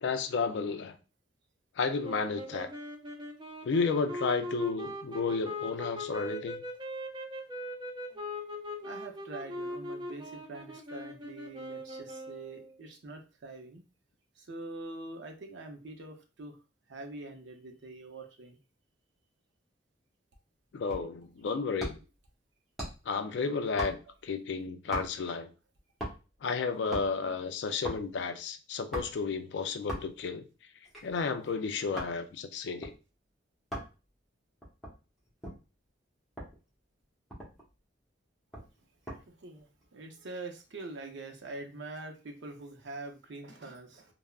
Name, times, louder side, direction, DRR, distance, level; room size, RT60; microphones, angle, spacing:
voice 1, 0.0-1.0 1.8-2.7 3.6-6.6 20.7-22.0 23.1-24.0 24.2-25.5 26.4-30.4 31.0-32.9, left 5 dB, 65° left, 0.3 m, -32 dB
sound 1, 2.0-12.8, left 1 dB, 25° right, 0.4 m, -40 dB
voice 2, 8.8-13.8 14.4-16.6 16.9-18.6 39.3-44.1, right 2 dB, 70° right, 0.6 m, -44 dB
sound 2, 20.9-21.2 21.8-22.2 22.8-23.1 23.8-24.3 24.9-25.3 26.0-26.4 26.7-27.1 27.8-28.1 28.9-29.3 29.9-30.3 30.8-32.2 32.8-33.0 33.7-34.0 34.6-35.6 36.4-36.6 37.0-37.1 37.3-37.7 38.5-39.2 39.6-39.9, equal, ahead, 0.8 m, -40 dB
3.4 x 2.0 x 2.3 m
head